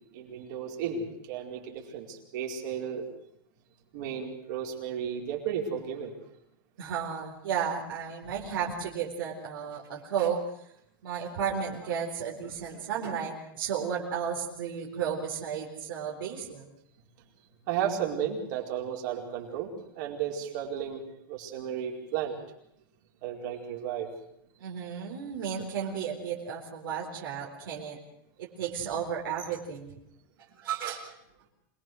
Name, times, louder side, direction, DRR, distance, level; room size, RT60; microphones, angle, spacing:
voice 1, 0.1-3.1 3.9-6.1 17.7-21.0 21.3-22.3 23.2-24.1 30.5-30.6, right 8 dB, 60° right, -1 dB, 4.7 m, -33 dB
voice 2, 6.8-10.4 11.0-16.7 24.6-28.0 28.4-30.0 30.6-31.1, right 7 dB, 80° right, -1 dB, 4.3 m, -33 dB
26.5 x 19.5 x 6.4 m, 0.74 s
supercardioid pair, 145°, 11 cm